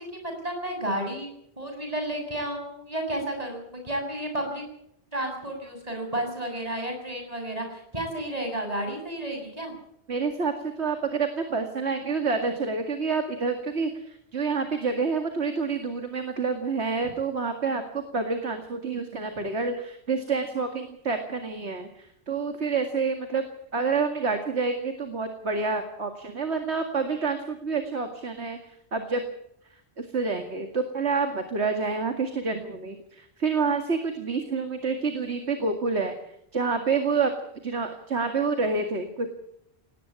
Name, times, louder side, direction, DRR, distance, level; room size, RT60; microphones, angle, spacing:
voice 1, 0.1-1.3 1.6-4.6 5.1-9.7, right 1 dB, 35° right, 4 dB, 7.4 m, -32 dB
voice 2, 10.1-23.4 23.7-29.2 30.0-37.3 37.6-39.3, right 4 dB, 85° right, 6 dB, 2.4 m, -28 dB
18.5 x 18.5 x 8.6 m, 0.75 s
omnidirectional pair, 1.1 m